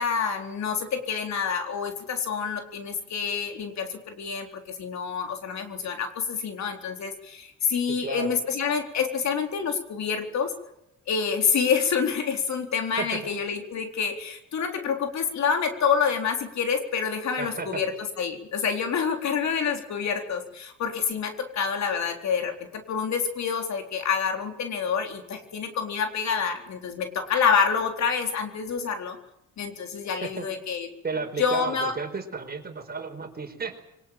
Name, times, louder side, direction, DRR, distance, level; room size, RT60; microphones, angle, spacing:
voice 1, 0.0-4.5 4.8-10.5 11.1-17.9 18.2-22.5 22.9-29.2 29.6-30.9 31.4-31.9, left 6 dB, 65° left, 5 dB, 4.0 m, -27 dB
voice 2, 7.9-8.3 13.0-13.2 17.4-17.8 30.2-30.5 31.0-33.8, right 4 dB, 30° right, 6 dB, 4.8 m, -33 dB
24.0 x 19.0 x 9.0 m, 0.82 s
cardioid pair, 90°, 30 cm